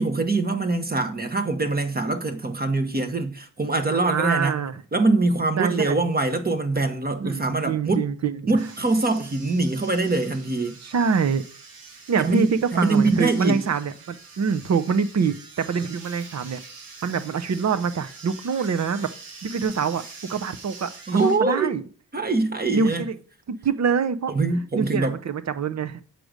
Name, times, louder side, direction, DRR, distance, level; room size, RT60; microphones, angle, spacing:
voice 1, 0.0-4.6 4.9-8.0 8.5-10.8 12.2-13.6 21.1-21.7 22.1-23.0 24.3-25.2, right 3 dB, 25° right, 1.1 m, -23 dB
voice 2, 3.9-4.7 5.6-6.0 7.2-8.4 10.8-11.4 12.1-16.6 17.0-19.1 19.4-20.0 20.3-21.8 22.7-23.1 23.5-24.3 24.7-26.0, right 6 dB, 50° right, 0.8 m, -25 dB
sound 1, 8.6-21.4, right 4 dB, 80° right, 1.6 m, -44 dB
7.7 x 5.0 x 6.6 m
wide cardioid pair, 115°, 35 cm